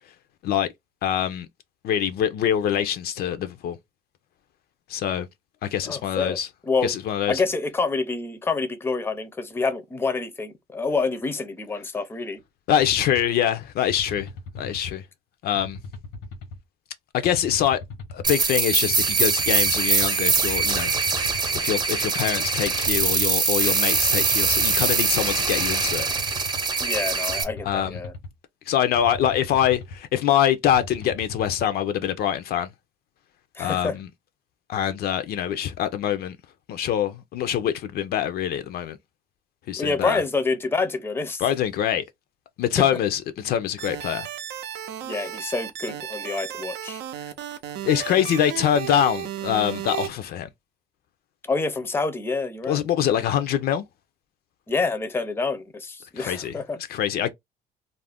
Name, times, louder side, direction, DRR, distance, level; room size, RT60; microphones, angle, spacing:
voice 1, 1.0-1.5 1.8-3.8 4.9-5.3 5.6-6.5 6.8-7.4 12.7-14.3 14.6-15.0 15.4-15.8 17.1-17.8 18.1-20.9 21.5-26.1 27.6-28.0 28.7-32.7 33.6-34.1 34.7-36.4 36.7-39.0 39.7-40.2 41.4-42.0 42.6-44.3 47.8-50.5 52.7-53.8 56.2-56.5 56.9-57.3, left 10 dB, 65° left, 0.4 m, -24 dB
voice 2, 5.8-6.4 6.6-6.9 7.3-12.4 26.8-28.1 33.6-34.0 39.8-41.5 42.8-42.9 45.0-47.0 51.5-52.8 54.7-56.8, left 4 dB, 15° left, 0.5 m, -27 dB
sound 1, 12.8-13.2 13.9-14.9 15.5-16.6 17.2-18.3 18.9-19.9 20.6-21.6 22.2-23.3 23.9-25.0 25.6-26.6 27.3-28.3 28.9-30.0 30.6-31.7, left 3 dB, 85° left, 0.9 m, -38 dB
sound 2, 18.2-27.4, right 4 dB, 25° right, 0.7 m, -23 dB
sound 3, 43.8-50.1, right 11 dB, 85° right, 0.5 m, -34 dB
2.4 x 2.0 x 3.4 m
cardioid pair, 110°, 17 cm